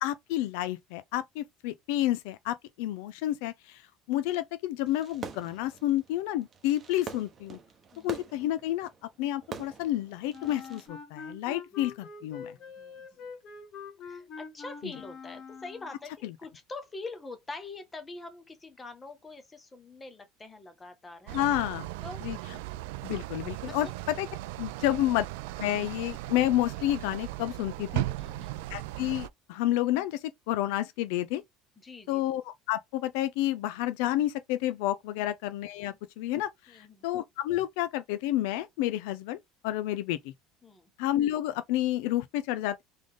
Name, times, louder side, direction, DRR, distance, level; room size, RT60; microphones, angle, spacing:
voice 1, 0.0-3.8 4.1-7.6 8.0-8.9 9.2-12.5 14.8-14.9 16.2-16.3 21.3-21.9 22.2-22.4 23.0-24.3 24.6-25.2 25.6-28.0 28.7-31.4 32.1-39.4 39.6-40.3 41.0-42.8, left 14 dB, 80° left, 0.6 m, -30 dB
Fireworks, 4.9-10.9, right 6 dB, 25° right, 1.0 m, -45 dB
voice 2, 7.9-8.2 12.6-13.1 14.0-21.4 22.0-22.2 23.6-23.9 24.8-24.9 28.2-28.5 31.8-32.2 35.2-35.3 35.9-36.0 36.7-37.1 40.6-40.9, left 3 dB, 15° left, 1.1 m, -44 dB
Wind instrument woodwind instrument, 10.3-16.0, left 5 dB, 45° left, 1.3 m, -44 dB
sound 1, 21.3-29.3, right 17 dB, 90° right, 0.4 m, -37 dB
3.9 x 3.4 x 3.6 m
cardioid pair, 150°, 0 cm